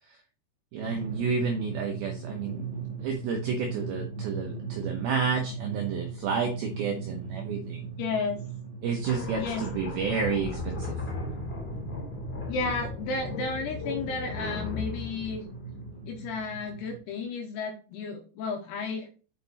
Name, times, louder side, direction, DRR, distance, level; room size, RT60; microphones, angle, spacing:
voice 1, 0.7-2.7 3.0-7.9 8.8-11.0, right 5 dB, 80° right, 3 dB, 2.2 m, -30 dB
Drum, 0.8-17.0, right 5 dB, 60° right, 2.1 m, -39 dB
voice 2, 8.0-8.4 9.3-9.6 12.5-15.4 16.1-19.1, left 4 dB, 75° left, 3 dB, 2.7 m, -32 dB
sound 1, 9.0-16.4, left 4 dB, 20° left, 1.9 m, -37 dB
7.3 x 5.8 x 4.0 m, 0.37 s
omnidirectional pair, 5.6 m